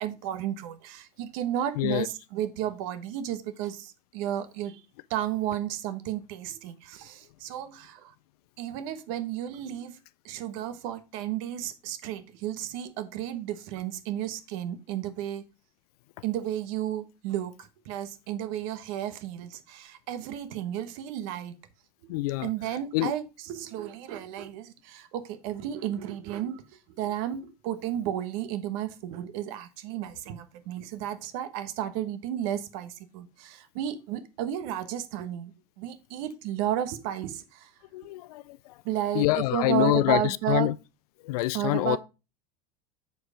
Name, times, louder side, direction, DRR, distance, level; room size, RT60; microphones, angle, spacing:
voice 1, 0.0-4.8 5.1-8.1 8.6-10.0 10.2-15.4 16.2-21.5 22.0-22.1 22.4-37.7 38.8-40.7 41.5-42.0, right 11 dB, 60° right, 1.2 m, -33 dB
voice 2, 1.8-2.1 22.1-22.5 22.9-23.1 37.9-38.8 39.1-40.7 41.2-42.0, left 18 dB, 80° left, 0.4 m, -26 dB
7.9 x 4.6 x 4.9 m
supercardioid pair, 135°, 19 cm